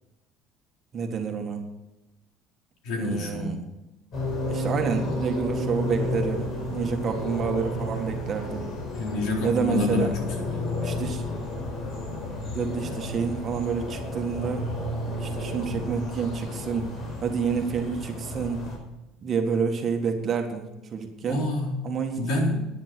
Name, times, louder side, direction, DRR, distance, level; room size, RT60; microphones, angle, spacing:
voice 1, 0.9-1.6 3.0-3.7 4.5-8.7 9.4-10.2 10.8-11.2 12.5-14.6 15.2-16.9 17.2-18.7 19.2-20.7 20.9-21.4 21.8-22.2, right 6 dB, 35° right, 3 dB, 1.7 m, -28 dB
voice 2, 2.8-3.6 8.9-10.1 10.4-11.0 21.2-21.8 22.2-22.7, left 2 dB, 65° left, 0 dB, 4.0 m, -28 dB
sound 1, 4.1-18.8, left 1 dB, 50° left, 5.0 m, -32 dB
10.5 x 9.9 x 6.2 m, 0.97 s
cardioid pair, 140°, 0 cm